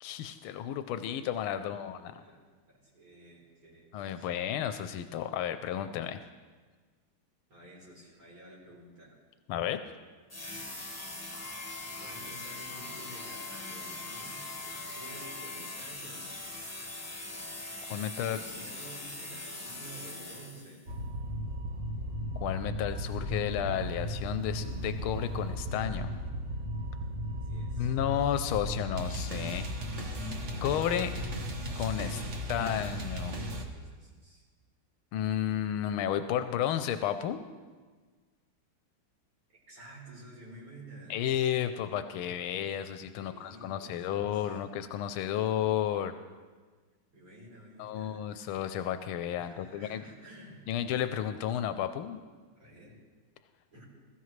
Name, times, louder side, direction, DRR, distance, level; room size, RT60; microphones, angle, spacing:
voice 1, 0.0-2.2 3.9-6.2 9.5-9.8 17.9-18.4 22.4-26.1 27.8-29.7 30.6-31.2 31.7-32.2 32.5-33.3 35.1-37.4 41.1-46.1 47.8-50.1 50.7-52.2, left 10 dB, 90° left, 10 dB, 1.5 m, -32 dB
voice 2, 1.5-2.4 2.7-3.9 4.1-4.3 7.5-9.2 11.7-16.7 18.0-20.8 27.3-28.0 32.1-32.9 33.3-34.4 39.7-41.2 43.0-44.7 47.1-48.3 49.4-50.7 52.5-52.9 53.7-53.8, right 1 dB, 80° right, -5 dB, 4.9 m, -51 dB
sound 1, 10.3-20.9, left 2 dB, 10° left, 0.8 m, -42 dB
Wind instrument woodwind instrument, 11.3-15.8, left 8 dB, 60° left, 0.8 m, -48 dB
sound 2, 20.9-33.7, equal, 40° right, 1.3 m, -36 dB
21.5 x 13.5 x 3.2 m, 1.4 s
omnidirectional pair, 2.3 m